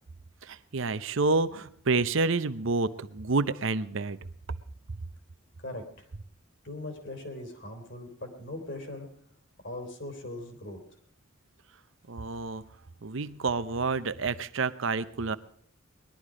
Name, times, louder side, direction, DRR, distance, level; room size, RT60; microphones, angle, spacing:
voice 1, 0.4-4.2 12.1-12.6 13.0-15.4, right 3 dB, 70° right, 13 dB, 0.7 m, -28 dB
voice 2, 5.6-6.1 6.6-9.1 9.6-10.8, left 1 dB, 55° left, 6 dB, 3.4 m, -40 dB
20.0 x 12.0 x 5.0 m, 0.63 s
head